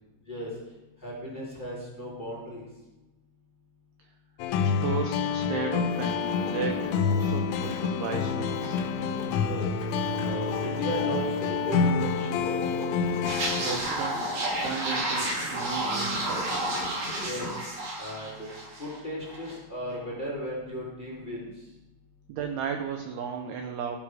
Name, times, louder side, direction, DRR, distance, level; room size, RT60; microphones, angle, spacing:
voice 1, 1.0-2.6 9.4-9.7 10.2-12.6 17.2-17.5 18.0-18.5 18.8-21.5, equal, 10° left, -5 dB, 2.9 m, -36 dB
sound 1, 4.4-13.8, left 6 dB, 85° left, 3.1 m, -28 dB
voice 2, 4.5-6.9 7.2-8.8 13.6-14.3 14.6-16.9 22.3-24.0, right 6 dB, 80° right, 5 dB, 2.3 m, -35 dB
sound 2, 5.9-17.5, left 1 dB, 55° left, 1.4 m, -40 dB
sound 3, 13.2-19.0 19.2-19.5, right 1 dB, 50° right, 4.5 m, -31 dB
15.5 x 7.7 x 4.9 m, 1.0 s
omnidirectional pair, 5.7 m